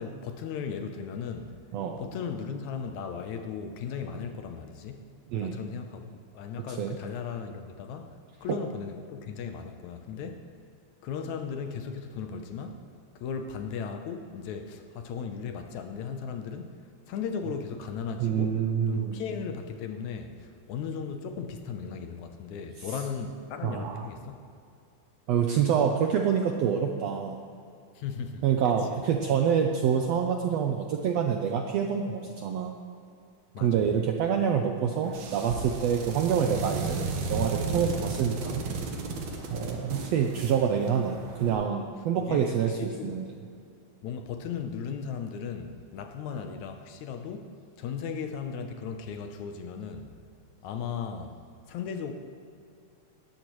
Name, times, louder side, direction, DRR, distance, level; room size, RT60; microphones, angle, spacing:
voice 1, 0.0-1.5 2.0-5.1 5.4-8.2 8.4-10.4 11.0-12.8 13.2-16.8 17.1-18.6 18.9-24.4 28.0-29.0 33.5-33.9 39.6-39.9 42.3-43.2 44.0-47.5 47.8-50.1 50.6-51.4 51.7-52.1, left 6 dB, 75° left, 6 dB, 2.0 m, -36 dB
voice 2, 5.3-5.6 6.7-7.0 8.5-8.6 18.2-19.2 23.6-24.1 25.3-27.4 28.4-32.7 33.6-37.0 37.3-38.6 39.5-43.3, right 7 dB, 80° right, 3 dB, 1.5 m, -27 dB
sound 1, 35.0-41.5, right 3 dB, 60° right, 2.4 m, -34 dB
19.0 x 13.5 x 3.2 m, 2.5 s
omnidirectional pair, 3.7 m